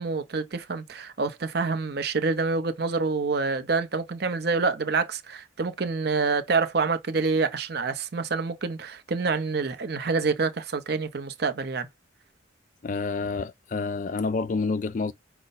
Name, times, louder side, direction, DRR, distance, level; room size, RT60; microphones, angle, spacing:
voice 1, 0.0-11.9, right 4 dB, 55° right, 0.6 m, -27 dB
voice 2, 12.8-15.1, left 4 dB, 40° left, 0.3 m, -28 dB
5.3 x 2.1 x 4.0 m
head